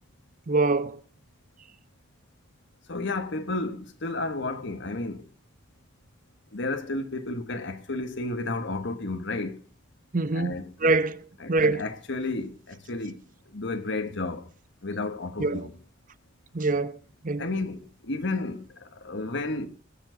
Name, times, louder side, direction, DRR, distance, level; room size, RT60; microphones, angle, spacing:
voice 1, 0.5-0.9 10.1-10.5 10.8-11.2 11.5-11.8 15.4-15.6 16.5-16.9 17.2-17.4, right 3 dB, 40° right, 0.7 m, -23 dB
voice 2, 2.9-5.3 6.5-9.6 10.3-10.7 11.4-13.2 13.5-14.5 14.8-15.8 17.4-19.7, left 2 dB, 65° left, 1.4 m, -32 dB
20.5 x 7.3 x 3.9 m
head